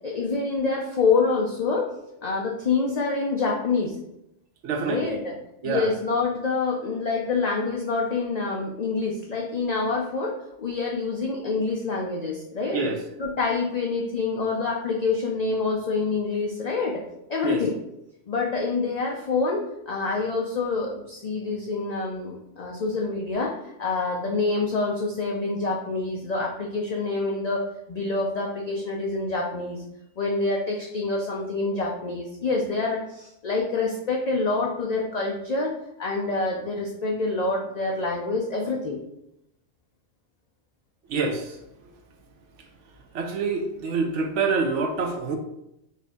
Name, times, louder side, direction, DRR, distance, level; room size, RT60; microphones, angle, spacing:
voice 1, 0.0-1.9 2.2-4.0 4.9-5.4 5.6-12.9 13.2-17.0 17.3-17.7 18.3-23.5 23.8-29.9 30.2-35.7 36.0-39.0, left 3 dB, 55° left, -2 dB, 0.4 m, -26 dB
voice 2, 4.6-5.2 5.6-5.9 12.7-13.0 17.4-17.6 41.1-41.6 43.1-45.4, right 4 dB, 70° right, 4 dB, 0.9 m, -26 dB
4.2 x 2.6 x 3.5 m, 0.82 s
omnidirectional pair, 1.3 m